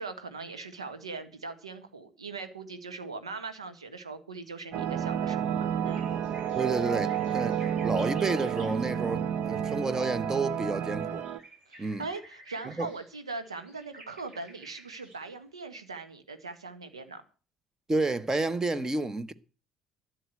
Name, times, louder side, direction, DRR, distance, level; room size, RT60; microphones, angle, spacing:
voice 1, 0.0-6.0 11.7-17.2, right 3 dB, 85° right, 1.4 m, -40 dB
sound 1, 4.7-11.4, right 9 dB, 55° right, 1.0 m, -30 dB
sound 2, 5.9-8.9 9.5-9.6 10.4-10.5 10.7-15.2, right 1 dB, 40° right, 8.0 m, -52 dB
voice 2, 6.6-11.2 11.8-12.0 12.8-12.9 17.9-19.3, right 3 dB, 20° right, 1.2 m, -30 dB
12.5 x 7.9 x 7.8 m
figure-of-eight pair, 55°, 3 cm